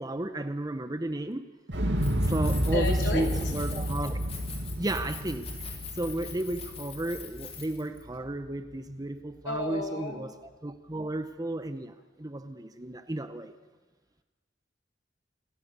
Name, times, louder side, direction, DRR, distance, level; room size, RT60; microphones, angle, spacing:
voice 1, 0.0-1.5 2.3-4.2 4.8-5.5 5.9-13.5, right 1 dB, 20° right, 10 dB, 0.9 m, -33 dB
Explosion, 1.7-7.7 8.0-8.1, equal, 80° right, 2.5 m, -30 dB
Keys jangling, 2.0-8.0, left 6 dB, 35° left, 3.8 m, -44 dB
voice 2, 2.7-3.2 9.4-10.2, left 2 dB, 75° left, 2 dB, 4.4 m, -32 dB
28.0 x 20.0 x 6.9 m, 1.2 s
head